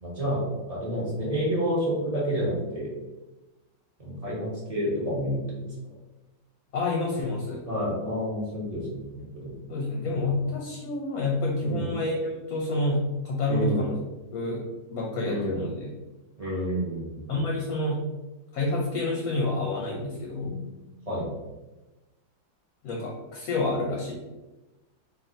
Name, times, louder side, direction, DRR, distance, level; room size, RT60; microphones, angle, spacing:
voice 1, 0.0-2.9 4.0-5.7 7.7-9.6 11.6-11.9 13.5-13.9 15.2-15.6 16.4-17.4 20.4-20.5 21.1-21.3, equal, 30° right, -7 dB, 0.8 m, -29 dB
voice 2, 6.7-7.7 9.7-13.9 14.3-15.9 17.3-18.1 18.5-20.6 22.8-24.2, left 2 dB, 65° left, -1 dB, 0.9 m, -28 dB
3.1 x 2.5 x 3.9 m, 1.1 s
omnidirectional pair, 2.0 m